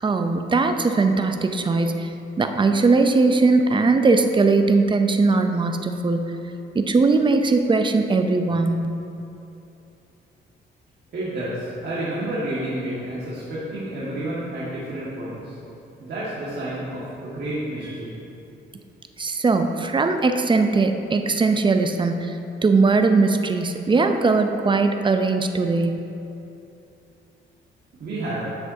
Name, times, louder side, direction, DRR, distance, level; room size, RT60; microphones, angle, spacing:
voice 1, 0.0-2.1 2.4-6.3 6.7-8.9 19.2-26.0, right 3 dB, 25° right, 6 dB, 0.6 m, -20 dB
voice 2, 11.1-15.5 16.0-18.1 28.0-28.5, right 1 dB, 55° right, -9 dB, 1.9 m, -30 dB
10.0 x 7.1 x 2.8 m, 2.8 s
cardioid pair, 90°, 20 cm